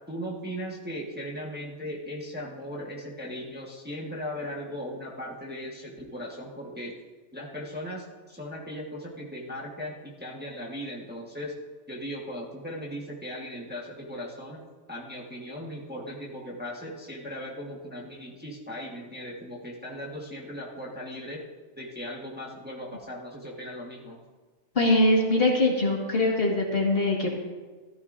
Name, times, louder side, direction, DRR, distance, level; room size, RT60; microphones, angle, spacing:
voice 1, 0.1-6.9 7.3-11.6 11.9-14.6 14.9-21.4 21.7-24.2, equal, 10° right, -4 dB, 1.4 m, -38 dB
voice 2, 24.8-27.3, left 2 dB, 45° left, -1 dB, 1.9 m, -22 dB
14.5 x 13.5 x 2.6 m, 1.3 s
omnidirectional pair, 1.4 m